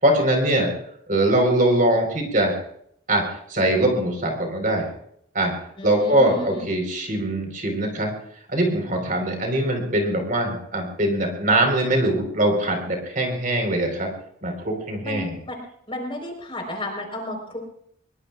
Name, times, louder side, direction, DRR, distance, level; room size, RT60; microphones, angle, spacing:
voice 1, 0.0-0.7 1.1-2.5 3.1-3.2 3.5-4.9 5.3-5.5 5.8-8.1 8.5-14.1 14.4-15.3, right 1 dB, 40° right, 3 dB, 4.3 m, -22 dB
voice 2, 5.8-6.7 15.0-15.6 15.9-17.6, left 1 dB, 25° left, 2 dB, 4.3 m, -32 dB
23.5 x 22.5 x 2.4 m, 0.68 s
head